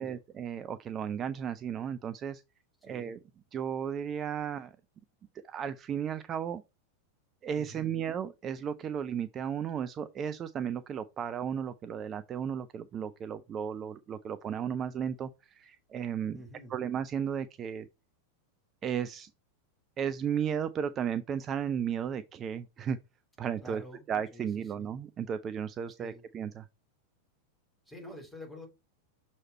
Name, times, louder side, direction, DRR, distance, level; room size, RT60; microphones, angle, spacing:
voice 1, 0.0-2.4 2.8-3.2 3.5-4.7 5.4-6.6 7.4-16.4 16.7-17.9 18.8-19.3 20.0-23.0 23.4-23.8 24.1-26.7, right 8 dB, 25° right, 0.4 m, -34 dB
voice 2, 2.8-3.1 7.6-7.9 16.3-16.7 23.6-24.0 24.3-24.5 24.8-24.9 26.0-26.2 27.9-28.7, equal, 5° left, 3.2 m, -47 dB
6.4 x 4.2 x 4.2 m
figure-of-eight pair, 90°, 0 cm